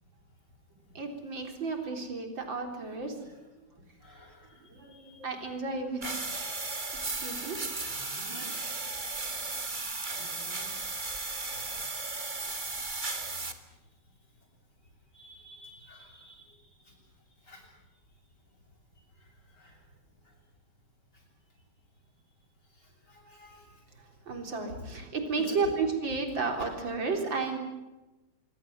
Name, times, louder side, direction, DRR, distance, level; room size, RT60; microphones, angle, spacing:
voice 1, 0.9-3.5 4.7-6.0 7.0-7.6 24.3-27.6, right 4 dB, 70° right, 4 dB, 4.6 m, -33 dB
voice 2, 4.0-4.6 4.9-5.2 8.3-8.5 15.1-16.4 17.5-17.6 19.6-19.8 23.1-23.7 25.5-25.6, left 1 dB, 55° left, 1 dB, 8.8 m, -50 dB
sound 1, 6.0-13.5, right 3 dB, 25° right, 2.0 m, -35 dB
25.5 x 23.5 x 7.8 m, 1.1 s
omnidirectional pair, 2.2 m